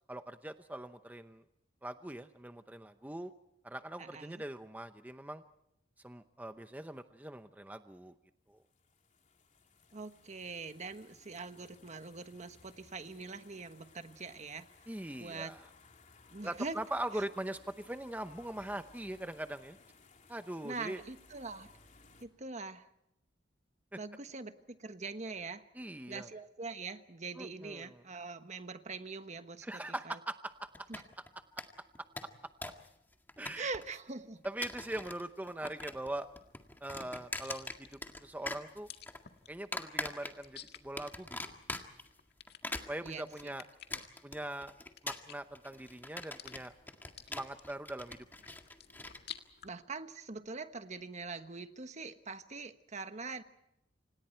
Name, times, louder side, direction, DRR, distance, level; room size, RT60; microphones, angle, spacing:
voice 1, 0.1-1.4 1.8-3.3 3.6-5.4 6.0-8.1 8.5-8.6 14.9-15.6 16.4-19.8 20.3-21.0 25.8-26.3 27.4-28.0 29.6-30.9 32.0-32.1 33.4-33.7 34.4-36.3 36.8-38.9 39.5-41.4 42.9-43.6 44.2-44.7 45.0-46.7 47.3-48.2, right 1 dB, 10° right, 9 dB, 0.8 m, -41 dB
voice 2, 4.0-4.4 9.9-14.7 15.2-15.5 16.3-16.8 20.6-21.7 22.2-22.9 24.0-25.7 26.1-30.2 30.9-31.0 33.5-34.4 43.0-43.5 43.9-44.0 49.6-53.4, right 4 dB, 40° right, 10 dB, 1.3 m, -43 dB
sound 1, 8.6-22.3, left 4 dB, 45° left, 3.3 m, -61 dB
sound 2, 30.7-31.3 31.6-31.7 32.0-32.9 33.1-34.0 34.4-35.2 35.5-36.1 36.4-38.2 38.5-39.2 39.7-40.6 41.0-42.1 42.5-49.2, left 2 dB, 10° left, 1.9 m, -42 dB
sound 3, 35.7-49.7, left 9 dB, 60° left, 1.9 m, -55 dB
29.5 x 26.5 x 4.5 m, 0.83 s
head